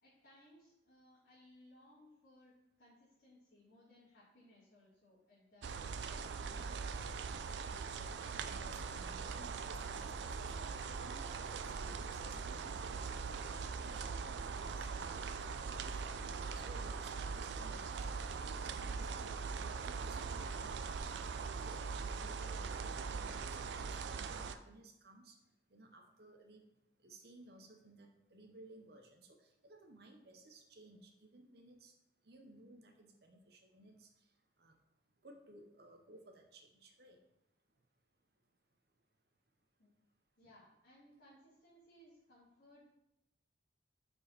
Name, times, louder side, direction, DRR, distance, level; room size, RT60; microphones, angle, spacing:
voice 1, 0.0-7.0 39.8-39.9 40.4-42.8, left 1 dB, 65° left, -11 dB, 2.4 m, -64 dB
sound 1, 5.6-24.5, right 5 dB, 75° right, 0.4 m, -41 dB
voice 2, 7.9-18.2 18.6-20.8 21.1-25.4 25.7-26.6 27.0-31.9 32.2-34.1 34.6-34.8 35.2-37.2, right 2 dB, 55° right, 3 dB, 0.8 m, -59 dB
5.2 x 4.5 x 4.3 m, 0.86 s
head